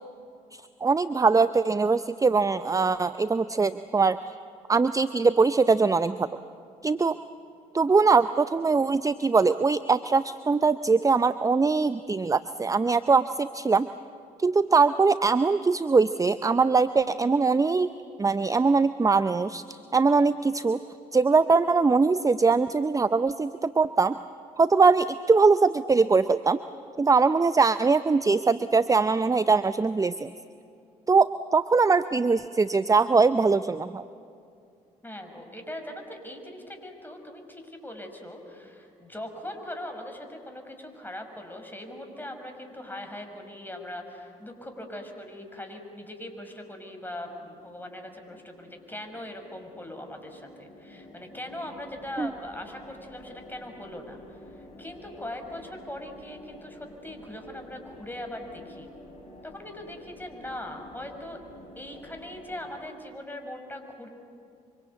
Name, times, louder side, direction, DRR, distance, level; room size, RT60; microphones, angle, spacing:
voice 1, 0.5-4.2 4.7-6.3 6.8-7.2 7.7-13.9 14.4-17.9 18.2-20.8 21.1-24.2 24.6-26.6 27.0-30.3 31.1-34.1 52.2-52.3, right 4 dB, 20° right, 13 dB, 0.6 m, -22 dB
voice 2, 35.0-58.9 59.4-61.4 61.8-64.1, left 1 dB, 10° left, 4 dB, 5.4 m, -40 dB
sound 1, 47.3-62.8, left 1 dB, 35° left, 5.8 m, -50 dB
25.0 x 24.5 x 8.2 m, 2.4 s
hypercardioid pair, 45°, 18 cm